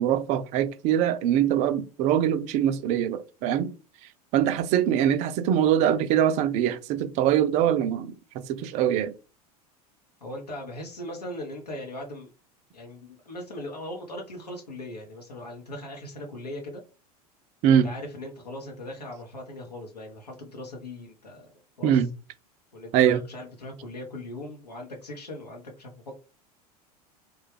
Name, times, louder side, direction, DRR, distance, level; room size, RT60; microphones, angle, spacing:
voice 1, 0.0-3.7 4.3-8.1 8.5-9.1 17.6-17.9 21.8-22.1 22.9-23.2, right 10 dB, 35° right, 0.4 m, -23 dB
voice 2, 10.2-12.3 12.7-16.8 17.7-21.5 21.8-22.1 22.7-26.1, left 1 dB, 80° left, 0.7 m, -39 dB
3.2 x 2.2 x 3.2 m
figure-of-eight pair, 80°, 20 cm